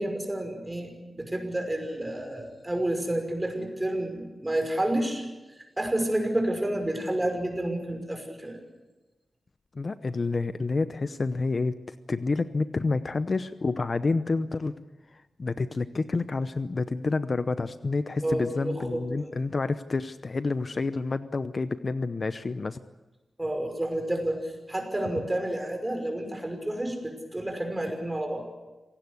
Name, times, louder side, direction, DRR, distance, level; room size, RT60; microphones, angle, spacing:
voice 1, 0.0-5.2 5.5-8.6 18.2-19.3 23.4-28.5, right 1 dB, 15° right, 4 dB, 5.8 m, -30 dB
voice 2, 9.7-14.8 15.4-22.8, left 3 dB, 45° left, 11 dB, 0.8 m, -29 dB
27.0 x 17.5 x 8.3 m, 1.1 s
wide cardioid pair, 100°, 0 cm